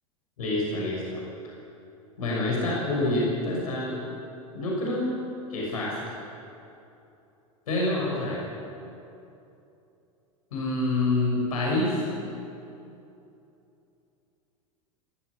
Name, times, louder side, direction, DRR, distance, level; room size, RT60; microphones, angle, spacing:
voice 1, 0.4-1.2 2.2-4.0 4.5-5.2 5.5-6.1 7.7-8.4 10.5-12.0, left 2 dB, 75° left, -4 dB, 6.3 m, -27 dB
20.0 x 14.5 x 9.8 m, 2.8 s
hypercardioid pair, 90°, 18 cm